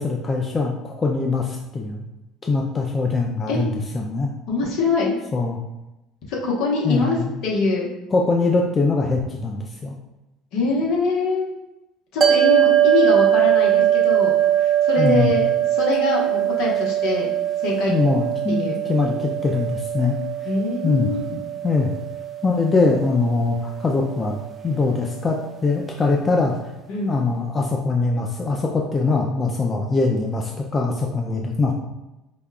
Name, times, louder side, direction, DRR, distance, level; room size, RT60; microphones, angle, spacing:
voice 1, 0.0-2.0 2.4-4.3 5.3-5.6 6.8-7.3 8.1-9.9 15.0-15.3 17.9-20.2 20.8-21.1 21.6-21.9 22.4-24.4 24.6-26.5 27.0-31.7, left 3 dB, 30° left, 0 dB, 0.4 m, -22 dB
voice 2, 4.5-5.2 6.3-7.2 7.4-7.9 10.5-11.5 12.1-17.3 17.6-17.9 18.5-18.7 20.4-21.3 26.9-27.1, left 3 dB, 65° left, -2 dB, 1.0 m, -24 dB
sound 1, 12.2-24.7, right 11 dB, 35° right, 0.5 m, -21 dB
5.1 x 2.2 x 2.3 m, 0.95 s
hypercardioid pair, 65°, 0 cm